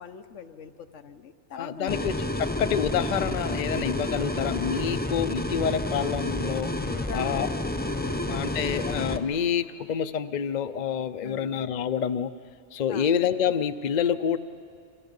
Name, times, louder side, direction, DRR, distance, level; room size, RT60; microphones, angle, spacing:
voice 1, 0.0-2.3 6.8-8.9 11.2-11.5 12.9-13.1, left 6 dB, 85° left, 8 dB, 1.3 m, -42 dB
voice 2, 1.6-6.7 7.1-7.5 8.3-12.3 12.7-14.4, left 8 dB, 45° left, 11 dB, 0.7 m, -27 dB
sound 1, 1.9-9.2, left 1 dB, 10° left, 0.8 m, -30 dB
28.5 x 25.5 x 5.4 m, 2.3 s
omnidirectional pair, 1.2 m